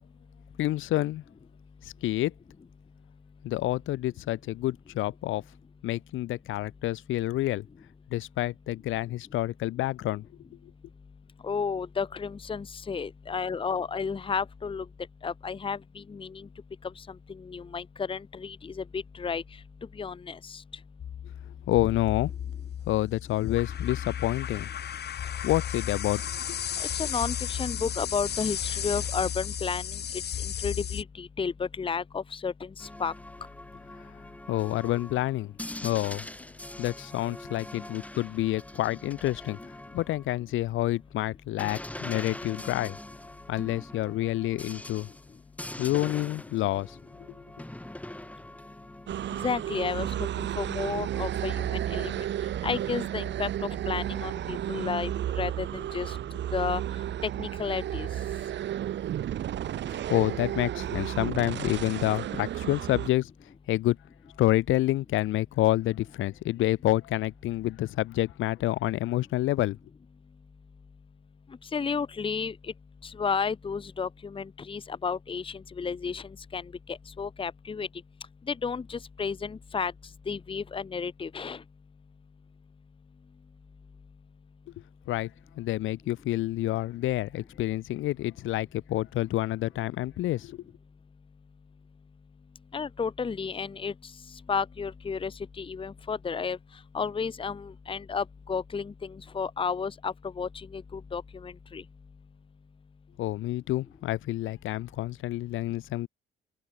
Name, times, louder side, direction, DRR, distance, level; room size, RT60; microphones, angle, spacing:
voice 1, 0.6-1.2 1.8-2.3 3.4-5.4 5.8-7.6 8.1-10.2 21.7-22.3 22.8-24.7 25.4-26.2 26.5-26.6 34.5-35.5 35.8-36.2 36.8-39.6 39.9-43.0 43.5-45.1 45.8-47.0 47.3-47.4 59.8-63.3 63.7-64.0 64.4-69.8 85.1-85.3 85.6-90.6 103.2-106.1, left 15 dB, 85° left, 1.5 m, -28 dB
voice 2, 11.4-14.9 15.2-16.5 16.8-19.6 19.9-20.6 26.8-33.1 49.3-52.3 52.6-56.2 56.5-56.8 57.2-58.1 71.6-72.7 73.0-77.9 78.5-79.9 80.3-81.6 92.7-96.6 96.9-101.8, left 5 dB, 25° left, 0.8 m, -32 dB
sound 1, 21.0-31.0, left 9 dB, 55° left, 1.7 m, -34 dB
sound 2, 32.8-40.5 41.6-50.4, left 1 dB, 5° left, 2.0 m, -43 dB
sound 3, 49.1-63.1, right 11 dB, 65° right, 1.0 m, -32 dB
cardioid pair, 90°, 20 cm